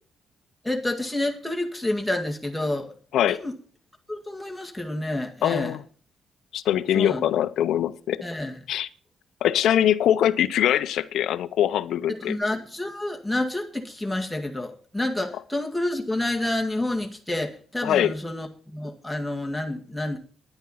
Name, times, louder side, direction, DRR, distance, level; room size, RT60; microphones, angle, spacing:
voice 1, 0.6-2.9 3.3-3.5 4.1-5.8 6.9-7.3 8.2-8.5 12.1-20.2, left 1 dB, 5° left, 1.9 m, -29 dB
voice 2, 5.4-5.8 6.5-8.2 8.7-8.9 9.4-12.4 17.8-18.1, left 11 dB, 75° left, 0.6 m, -22 dB
10.0 x 9.8 x 5.6 m
cardioid pair, 90°, 0 cm